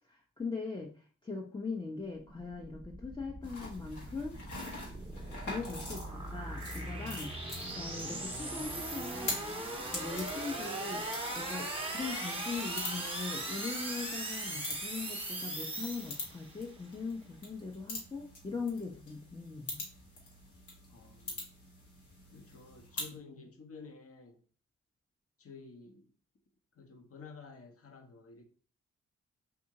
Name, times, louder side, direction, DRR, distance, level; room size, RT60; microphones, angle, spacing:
voice 1, 0.1-4.4 5.5-7.3 7.7-9.4 9.9-11.1 11.3-19.8, left 4 dB, 15° left, 0.6 m, -40 dB
sound 1, 2.1-16.6, right 1 dB, 20° right, 1.0 m, -39 dB
sound 2, 3.4-23.2, left 2 dB, 75° left, 1.3 m, -45 dB
voice 2, 20.9-21.4 22.3-24.4 25.4-26.1 26.7-28.4, left 4 dB, 50° left, 0.9 m, -51 dB
3.6 x 2.7 x 2.8 m
supercardioid pair, 45°, 30 cm